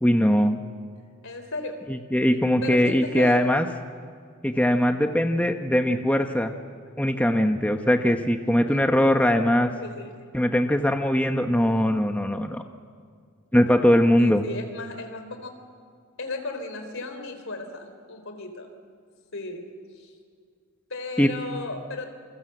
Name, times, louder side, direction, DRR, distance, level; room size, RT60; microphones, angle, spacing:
voice 1, 0.0-0.6 1.9-3.7 4.4-6.5 7.0-9.7 10.3-12.6 13.5-14.5 21.2-21.3, equal, 5° left, 5 dB, 1.0 m, -21 dB
voice 2, 1.2-1.8 2.6-3.4 9.8-10.3 14.2-15.5 16.2-18.7 19.3-20.1 20.9-22.1, left 2 dB, 65° left, 7 dB, 4.0 m, -35 dB
28.0 x 26.5 x 8.0 m, 2.1 s
head